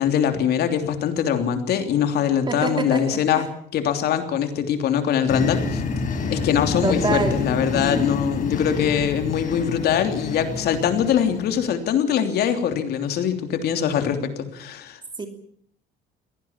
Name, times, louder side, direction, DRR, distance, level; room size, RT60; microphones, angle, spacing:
voice 1, 0.0-5.8 6.3-15.0, left 8 dB, 70° left, 7 dB, 3.2 m, -23 dB
voice 2, 2.5-3.2 6.8-7.4 15.2-15.3, right 4 dB, 25° right, 6 dB, 2.9 m, -25 dB
sound 1, 5.3-11.7, left 4 dB, 50° left, 5.3 m, -28 dB
23.5 x 18.0 x 7.4 m, 0.64 s
cardioid pair, 110°, 17 cm